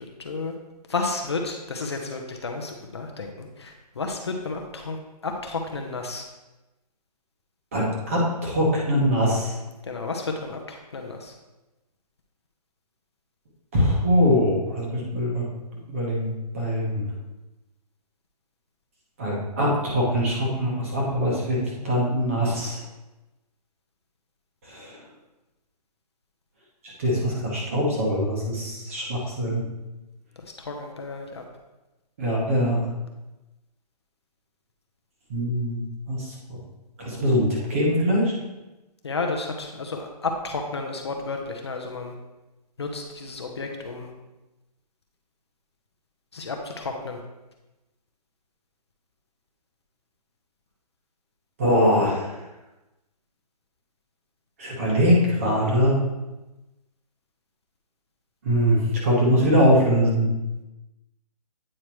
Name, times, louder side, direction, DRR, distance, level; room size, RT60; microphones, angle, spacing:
voice 1, 0.2-0.5 0.9-5.0 5.2-6.2 9.8-11.3 30.6-31.4 39.0-42.1 42.8-44.1 46.3-47.2, left 3 dB, 40° left, 3 dB, 0.6 m, -32 dB
voice 2, 7.7-9.5 13.7-15.4 15.9-17.0 19.2-22.8 24.7-25.0 27.0-29.6 32.2-32.9 35.3-35.8 36.1-36.6 37.0-38.3 51.6-52.3 54.6-56.0 58.4-60.3, equal, 20° right, -3 dB, 1.0 m, -22 dB
8.6 x 4.7 x 3.0 m, 1.0 s
hypercardioid pair, 175°, 21 cm